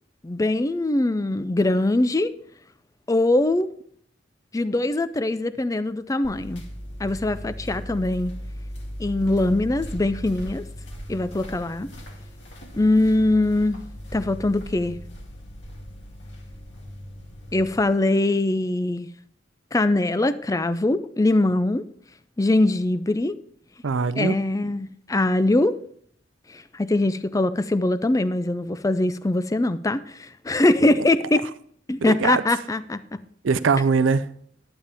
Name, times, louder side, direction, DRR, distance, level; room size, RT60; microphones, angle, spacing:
voice 1, 0.2-2.3 3.1-3.7 4.5-6.6 7.0-8.3 9.0-10.6 11.1-11.9 12.7-13.8 14.1-15.0 17.5-19.1 19.7-21.8 22.4-23.4 24.2-25.8 26.5-31.4 31.9-33.0, left 2 dB, 15° left, 0.4 m, -22 dB
sound 1, 6.2-17.8, equal, 65° left, 2.4 m, -38 dB
voice 2, 23.8-24.4 30.8-31.1 32.0-32.4 33.4-34.3, right 5 dB, 80° right, 0.5 m, -22 dB
11.5 x 8.8 x 3.4 m
head